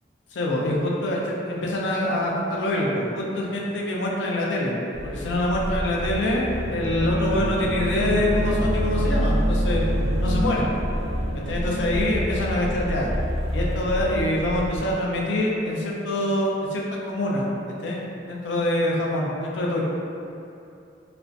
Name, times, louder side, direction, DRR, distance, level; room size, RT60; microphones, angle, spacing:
voice 1, 0.3-4.8 5.0-9.8 10.2-10.6 11.5-13.1 13.5-17.5 17.8-19.9, left 1 dB, 85° left, -3 dB, 0.4 m, -25 dB
sound 1, 4.9-14.9, equal, ahead, 0.5 m, -27 dB
sound 2, 5.9-14.4, right 2 dB, 55° right, 0.4 m, -34 dB
2.4 x 2.1 x 2.5 m, 2.6 s
head